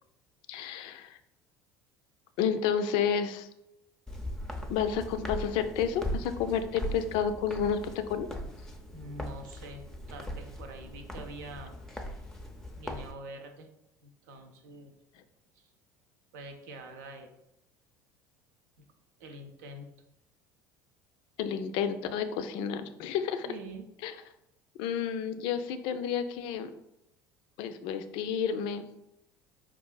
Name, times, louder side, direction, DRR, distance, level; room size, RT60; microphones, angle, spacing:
voice 1, 0.5-1.2 2.4-3.5 4.7-8.3 21.4-23.5 24.0-24.1 24.8-26.7 27.6-28.9, left 7 dB, 55° left, 9 dB, 0.4 m, -30 dB
Walk footsteps, 4.1-13.1, equal, 5° left, 0.5 m, -39 dB
voice 2, 8.9-11.8 12.7-13.7 14.0-14.9 15.5-15.7 16.3-17.4 19.2-19.9 23.4-23.9, right 1 dB, 65° right, 6 dB, 0.5 m, -45 dB
4.7 x 2.4 x 2.2 m, 0.86 s
figure-of-eight pair, 65°, 10 cm